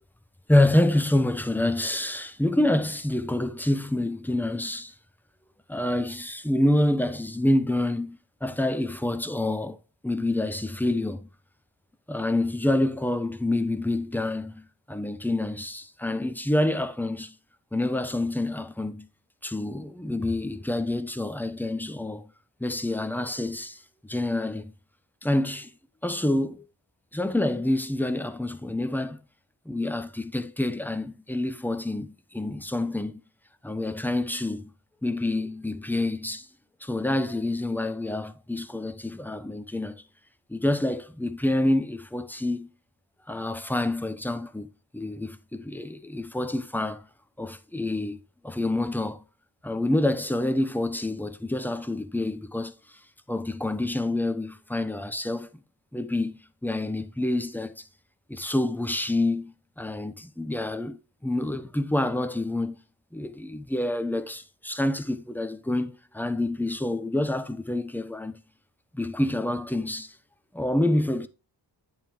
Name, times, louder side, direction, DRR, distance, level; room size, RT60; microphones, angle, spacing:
voice 1, 0.5-4.9 5.7-9.8 10.0-11.3 12.1-17.3 17.7-19.1 19.4-22.3 22.6-24.7 25.2-25.7 26.0-26.6 27.1-29.2 29.7-33.2 33.6-34.7 35.0-36.5 36.8-40.0 40.5-42.7 43.3-44.7 44.9-47.1 47.4-49.2 49.6-52.7 53.3-55.5 55.9-57.9 58.3-62.8 63.1-68.4 68.9-70.1 70.5-71.3, left 1 dB, 5° left, 0.6 m, -27 dB
8.9 x 3.8 x 4.5 m
wide cardioid pair, 90°, 44 cm